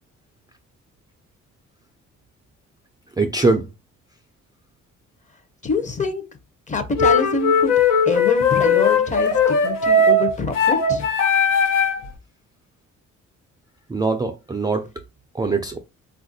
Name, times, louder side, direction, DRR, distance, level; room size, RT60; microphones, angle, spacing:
voice 1, 3.2-3.7 13.9-14.9 15.3-15.8, right 3 dB, 15° right, 0.3 m, -22 dB
voice 2, 5.6-6.2 6.7-7.7 8.1-11.1, left 3 dB, 25° left, 0.6 m, -25 dB
sound 1, 7.0-12.1, left 4 dB, 85° left, 0.7 m, -18 dB
3.5 x 2.4 x 2.6 m
cardioid pair, 90°, 30 cm